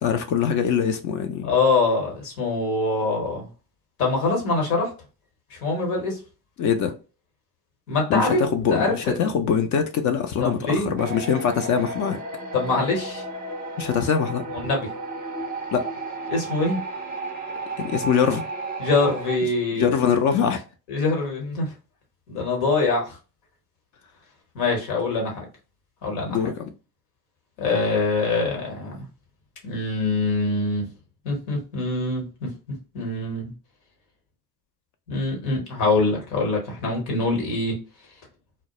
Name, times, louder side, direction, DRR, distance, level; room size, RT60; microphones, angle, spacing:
voice 1, 0.0-1.5 6.6-6.9 8.1-12.2 13.8-14.4 15.7-15.9 17.8-18.4 19.7-20.6 26.3-26.7, left 7 dB, 45° left, 0.4 m, -23 dB
voice 2, 1.4-3.5 4.0-4.9 5.5-6.2 7.9-8.4 8.7-9.3 10.4-11.0 12.5-13.2 14.5-14.9 16.3-16.8 18.8-19.9 20.9-21.7 22.3-23.2 24.5-25.4 26.0-26.4 27.6-29.1 29.6-30.9 31.2-32.5 32.9-33.5 35.1-37.8, left 3 dB, 80° left, 1.1 m, -24 dB
sound 1, 11.0-19.4, right 2 dB, 20° right, 0.6 m, -33 dB
2.2 x 2.0 x 2.8 m
hypercardioid pair, 60°, 45 cm